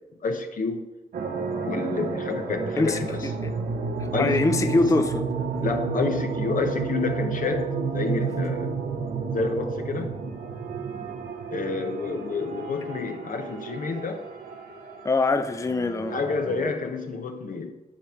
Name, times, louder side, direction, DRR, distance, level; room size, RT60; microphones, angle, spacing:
voice 1, 0.2-0.9 1.7-3.3 4.1-4.8 5.6-8.7 9.3-10.2 11.5-14.2 16.1-17.7, left 4 dB, 70° left, 1.0 m, -29 dB
sound 1, 1.1-16.7, right 5 dB, 90° right, 0.9 m, -31 dB
voice 2, 4.0-5.3 15.0-16.2, left 2 dB, 20° left, 0.5 m, -23 dB
9.9 x 3.6 x 5.9 m
cardioid pair, 55°, 15 cm